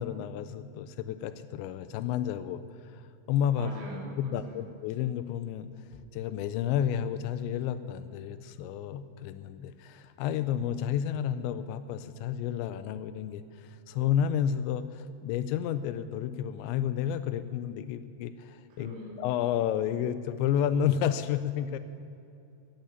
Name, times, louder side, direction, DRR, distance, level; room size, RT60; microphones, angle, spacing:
voice 1, 0.0-2.6 2.9-3.7 4.2-5.7 6.1-21.8, left 9 dB, 85° left, 12 dB, 2.7 m, -31 dB
voice 2, 3.6-4.6 18.7-19.2, equal, 80° right, -1 dB, 5.1 m, -43 dB
14.5 x 9.1 x 9.3 m, 2.7 s
omnidirectional pair, 5.4 m